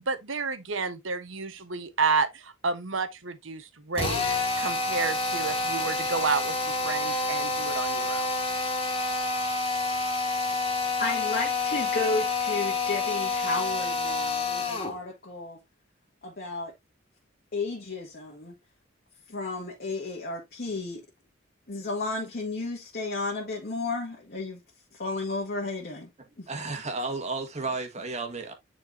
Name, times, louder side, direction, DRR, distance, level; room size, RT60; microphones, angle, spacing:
voice 1, 0.1-4.2 4.6-8.3, right 4 dB, 75° right, 1.1 m, -30 dB
Drill, 3.9-15.0, left 3 dB, 30° left, 2.6 m, -28 dB
voice 2, 11.0-15.6 16.2-16.7 17.5-18.5 19.3-21.0 21.7-24.6 24.9-26.1 26.4-26.5, left 3 dB, 50° left, 1.9 m, -33 dB
voice 3, 26.5-28.5, right 3 dB, 35° right, 1.8 m, -32 dB
9.7 x 4.5 x 2.7 m
head